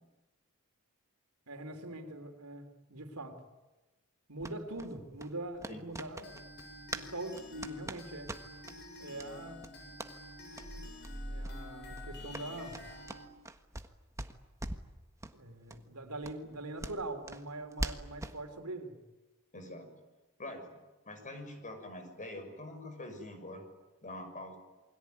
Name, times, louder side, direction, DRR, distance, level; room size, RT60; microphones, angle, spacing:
voice 1, 1.5-3.4 4.3-6.4 6.9-8.3 9.0-9.7 11.3-12.8 15.3-19.0, right 2 dB, 80° right, 6 dB, 3.6 m, -42 dB
sound 1, 4.4-7.1 7.3-8.8 9.2-9.3 9.6-10.1 10.5-10.7 11.0-11.1 11.4-11.6 11.9-13.9 14.2-14.9 15.2-15.4 15.7-15.8 16.2-18.4, right 1 dB, 15° right, 1.5 m, -42 dB
sound 2, 6.2-13.3, left 2 dB, 50° left, 7.7 m, -50 dB
sound 3, 10.6-13.2 13.5-13.6, right 1 dB, 35° right, 1.2 m, -45 dB
voice 2, 19.5-19.9 20.4-23.6 24.0-24.6, left 1 dB, 35° left, 7 dB, 6.1 m, -45 dB
28.5 x 22.0 x 9.5 m, 1.1 s
head